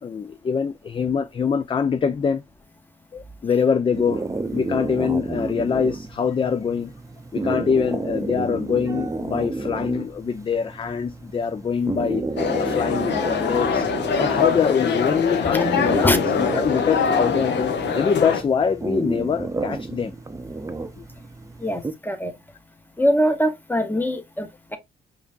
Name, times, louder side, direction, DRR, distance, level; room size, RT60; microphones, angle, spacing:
voice 1, 0.0-2.4 3.1-4.2 4.5-6.9 7.3-12.2 12.6-13.9 14.2-20.1 21.0-21.1, left 6 dB, 25° left, 0.4 m, -24 dB
sound 1, 3.9-21.9, right 3 dB, 15° right, 0.6 m, -31 dB
sound 2, 12.4-18.4, left 6 dB, 60° left, 0.9 m, -23 dB
voice 2, 15.5-16.2 21.6-22.3 23.0-24.8, equal, 10° left, 1.0 m, -23 dB
4.9 x 2.7 x 2.5 m
hypercardioid pair, 50°, 21 cm